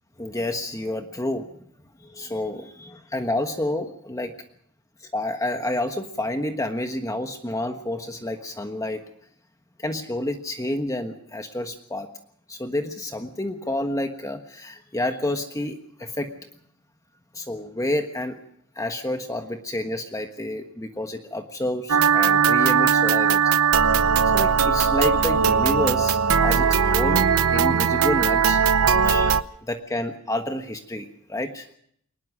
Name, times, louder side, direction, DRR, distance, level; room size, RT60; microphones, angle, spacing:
voice 1, 0.2-1.5 2.0-4.3 5.0-9.0 9.8-12.1 12.5-16.3 17.3-18.4 18.7-23.6 24.2-28.6 29.0-31.7, left 1 dB, 15° left, 6 dB, 1.3 m, -29 dB
sound 1, 21.9-29.4, right 6 dB, 75° right, 0.8 m, -19 dB
22.5 x 19.5 x 6.2 m, 0.67 s
head